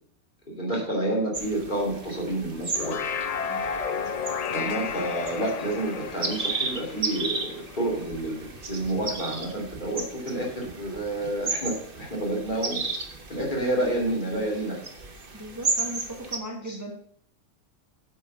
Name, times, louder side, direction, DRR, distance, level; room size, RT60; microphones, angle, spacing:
voice 1, 0.5-3.0 4.5-12.8 13.3-14.8 16.7-16.8, right 1 dB, 40° left, -2 dB, 3.0 m, -29 dB
sound 1, 1.3-16.4, right 3 dB, 45° right, 1.4 m, -34 dB
sound 2, 2.6-8.1, left 6 dB, 55° left, 0.4 m, -33 dB
voice 2, 15.3-17.0, equal, 15° right, 0 dB, 1.2 m, -37 dB
9.1 x 6.5 x 5.4 m, 0.62 s
omnidirectional pair, 1.3 m